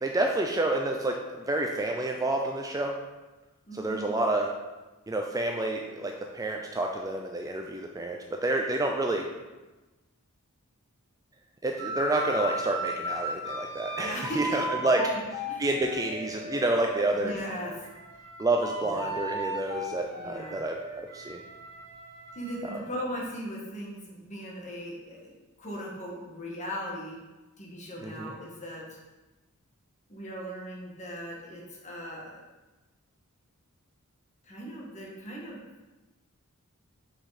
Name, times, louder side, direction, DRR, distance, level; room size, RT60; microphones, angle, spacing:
voice 1, 0.0-2.9 3.8-4.5 5.1-9.3 11.6-15.0 15.6-17.3 18.4-21.4 28.0-28.3, right 2 dB, 15° right, 1 dB, 0.4 m, -29 dB
voice 2, 3.7-4.1 14.0-15.2 15.4-15.7 17.1-17.9 18.8-19.0 20.2-20.6 22.3-27.2 27.6-29.0 30.1-32.4 34.4-35.6, equal, 35° left, -3 dB, 1.6 m, -38 dB
sound 1, 11.8-17.0 17.5-22.8, equal, 55° right, 1.9 m, -36 dB
6.3 x 4.9 x 4.1 m, 1.1 s
head